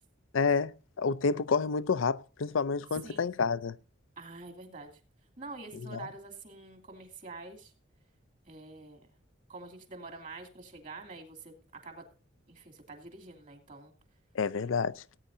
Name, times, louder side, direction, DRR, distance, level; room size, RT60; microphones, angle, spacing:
voice 1, 0.3-3.8 5.9-6.0 14.4-15.0, left 5 dB, 75° left, 0.5 m, -29 dB
voice 2, 4.2-5.0 5.4-7.7 8.5-9.1 9.5-12.0 12.5-13.9, right 3 dB, 40° right, 2.6 m, -46 dB
18.5 x 9.2 x 2.7 m
head